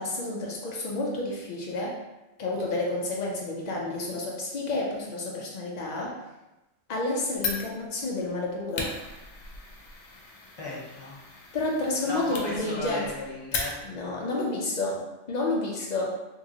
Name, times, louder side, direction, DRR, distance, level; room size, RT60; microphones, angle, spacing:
voice 1, 0.0-1.9 2.4-6.1 6.9-8.9 11.5-13.1 13.8-15.0 15.3-16.1, left 2 dB, 90° left, -2 dB, 0.3 m, -30 dB
Fire, 7.4-14.2, left 4 dB, 70° left, 0.8 m, -37 dB
voice 2, 10.6-11.2 12.0-13.8, left 2 dB, 25° left, -6 dB, 0.7 m, -35 dB
2.9 x 2.7 x 2.7 m, 1.0 s
omnidirectional pair, 1.3 m